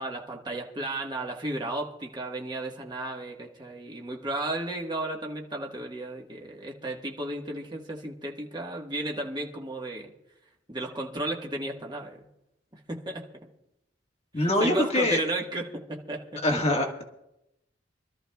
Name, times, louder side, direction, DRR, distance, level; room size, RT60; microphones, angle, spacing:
voice 1, 0.0-10.1 10.7-12.3 12.7-13.2 14.4-16.4, right 2 dB, 25° right, 0 dB, 1.4 m, -34 dB
voice 2, 14.3-15.2 16.4-17.0, left 1 dB, 35° left, 1 dB, 1.6 m, -24 dB
26.0 x 13.0 x 2.3 m, 0.86 s
head